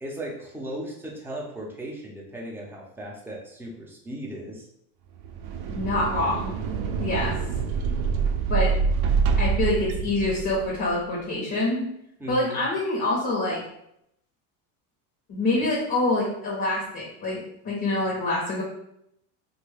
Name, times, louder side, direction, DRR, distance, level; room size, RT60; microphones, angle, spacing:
voice 1, 0.0-4.7 12.2-12.6, right 1 dB, 5° right, -3 dB, 0.6 m, -37 dB
sound 1, 5.2-10.8, right 5 dB, 50° right, 0.5 m, -26 dB
voice 2, 5.7-6.6 7.0-7.4 8.5-8.7 9.4-11.9 12.3-13.6 15.3-18.6, left 2 dB, 40° left, -5 dB, 1.1 m, -26 dB
2.7 x 2.6 x 3.3 m, 0.78 s
supercardioid pair, 110°, 47 cm